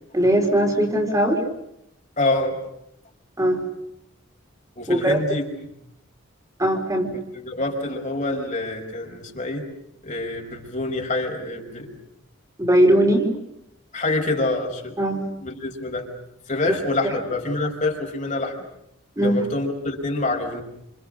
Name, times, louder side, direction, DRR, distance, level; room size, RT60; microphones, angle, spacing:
voice 1, 0.1-1.4 3.4-3.6 4.9-5.2 6.6-7.1 12.6-13.3 15.0-15.3 16.6-17.1 19.2-19.4, right 1 dB, 15° right, 1 dB, 4.2 m, -20 dB
voice 2, 2.2-2.6 4.8-5.5 7.3-9.6 10.0-11.9 13.9-15.0 15.4-16.1 16.5-18.6 19.2-20.6, left 2 dB, 40° left, 1 dB, 5.3 m, -26 dB
29.5 x 28.0 x 6.5 m, 0.78 s
head